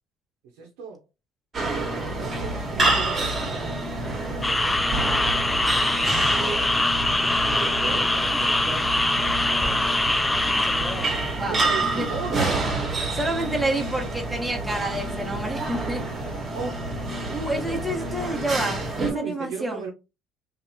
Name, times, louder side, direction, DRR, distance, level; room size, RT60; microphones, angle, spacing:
voice 1, 0.5-1.0 2.0-4.0 4.4-5.0 5.6-6.3 7.3-8.9 9.5-9.8 11.6-12.6 16.5-16.8 17.6-17.9 19.0-19.9, right 4 dB, 80° right, 0.6 m, -36 dB
sound 1, 1.5-19.1, right 2 dB, 35° right, 1.2 m, -28 dB
sound 2, 4.4-11.3, left 2 dB, 10° left, 0.4 m, -23 dB
voice 2, 10.5-11.1 11.4-11.6 11.9-12.1 13.1-16.0 17.3-19.8, right 1 dB, 10° right, 1.0 m, -29 dB
2.6 x 2.4 x 2.6 m
supercardioid pair, 75°, 0 cm